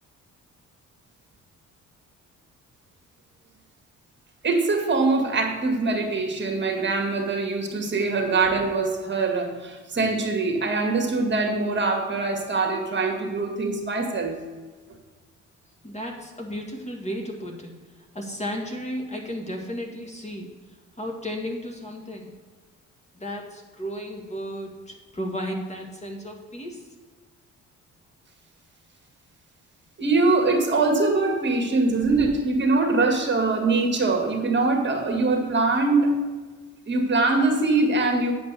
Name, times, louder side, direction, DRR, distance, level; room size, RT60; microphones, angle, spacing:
voice 1, 4.4-14.5 30.0-36.3 36.9-38.3, right 3 dB, 35° right, 3 dB, 1.9 m, -23 dB
voice 2, 15.8-17.7 18.2-20.5 21.0-22.3 23.2-26.8, equal, 20° left, 1 dB, 1.8 m, -34 dB
9.1 x 5.3 x 6.7 m, 1.4 s
cardioid pair, 90°, 30 cm